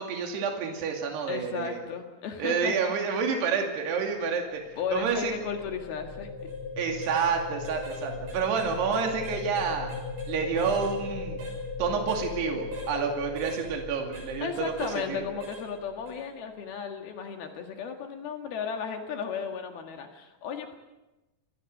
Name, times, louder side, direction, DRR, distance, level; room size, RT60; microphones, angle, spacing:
voice 1, 0.0-1.8 2.4-4.6 4.9-5.3 6.8-9.9 10.3-11.4 11.8-14.7 15.1-15.2, right 6 dB, 75° right, 2 dB, 4.6 m, -29 dB
voice 2, 1.3-2.9 4.8-6.3 14.4-20.7, left 6 dB, 65° left, 4 dB, 3.5 m, -34 dB
sound 1, 4.3-16.4, left 4 dB, 45° left, 3.2 m, -38 dB
sound 2, 6.4-6.6 7.0-7.3 7.7-8.0 8.3-10.3 10.6-10.9 11.4-11.6 12.1-12.3 12.7-12.9 13.4-13.6 14.1-14.3 14.8-15.0 15.4-15.7 16.1-16.2, right 4 dB, 60° right, 8.1 m, -42 dB
27.0 x 20.0 x 6.6 m, 1.0 s
omnidirectional pair, 4.9 m